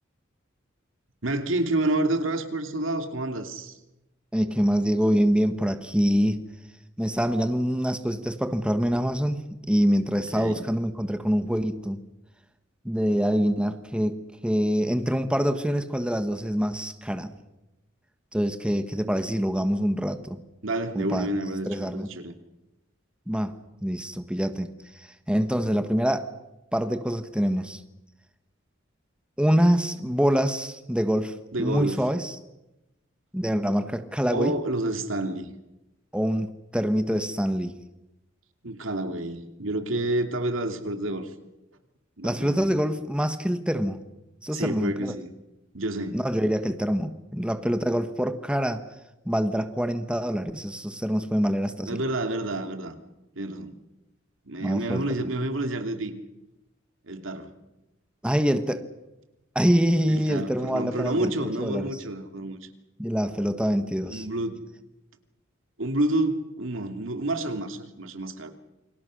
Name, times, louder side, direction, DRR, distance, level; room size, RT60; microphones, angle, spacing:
voice 1, 1.2-3.8 10.1-10.6 20.6-22.3 31.5-32.0 34.3-35.6 38.6-41.3 42.2-42.8 44.5-45.3 45.7-46.2 51.9-53.0 53.4-53.7 54.5-56.1 57.0-57.5 60.1-62.7 64.1-64.6 65.8-68.5, right 1 dB, 75° right, 7 dB, 2.7 m, -29 dB
voice 2, 4.3-6.4 7.0-9.4 9.7-12.0 12.8-14.2 14.4-17.3 18.3-20.4 20.9-21.3 21.6-22.1 23.3-23.5 23.8-24.7 24.9-26.3 26.7-27.8 29.4-32.3 33.3-34.5 36.1-37.7 42.2-44.0 44.4-45.1 46.1-48.8 49.2-52.0 54.6-55.0 58.2-58.8 59.5-61.3 61.6-61.9 63.0-64.2, equal, 5° right, 9 dB, 1.3 m, -25 dB
28.5 x 25.0 x 6.4 m, 0.96 s
head